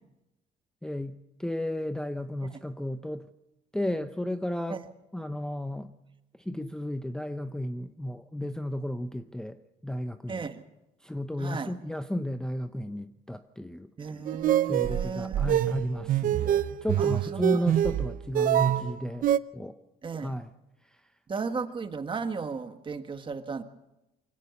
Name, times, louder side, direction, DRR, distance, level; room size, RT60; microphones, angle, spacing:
voice 1, 0.8-3.2 3.7-4.8 5.1-5.9 6.5-9.6 9.8-10.4 11.0-13.9 14.7-19.3 19.5-19.8 20.2-20.5, left 1 dB, 5° left, 8 dB, 0.7 m, -33 dB
voice 2, 10.3-10.6 11.4-11.7 14.0-15.5 17.0-17.6 18.7-18.9 20.0-20.4 21.3-23.6, right 5 dB, 30° right, 8 dB, 1.6 m, -35 dB
sound 1, 14.3-19.4, right 11 dB, 55° right, 0.7 m, -25 dB
24.0 x 16.5 x 7.1 m, 0.94 s
cardioid pair, 110°, 17 cm